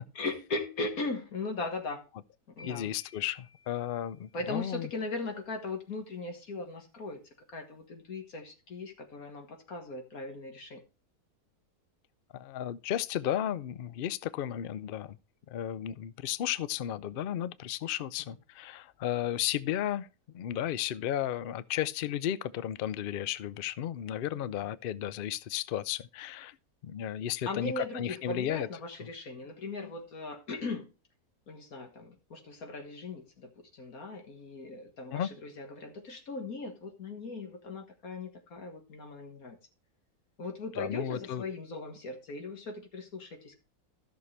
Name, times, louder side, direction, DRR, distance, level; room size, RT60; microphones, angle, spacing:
voice 1, 0.2-2.0 2.6-2.9 4.3-7.2 7.5-10.8 24.3-24.7 27.5-30.9 31.5-39.6 40.4-43.5, left 3 dB, 70° left, 2.0 m, -38 dB
voice 2, 2.6-4.9 12.3-15.2 15.5-20.1 20.3-26.6 26.8-28.7 35.1-35.3 40.8-41.4, left 11 dB, 90° left, 0.4 m, -34 dB
sound 1, 2.6-4.7, left 4 dB, 10° left, 1.1 m, -56 dB
13.5 x 6.6 x 3.3 m
omnidirectional pair, 1.6 m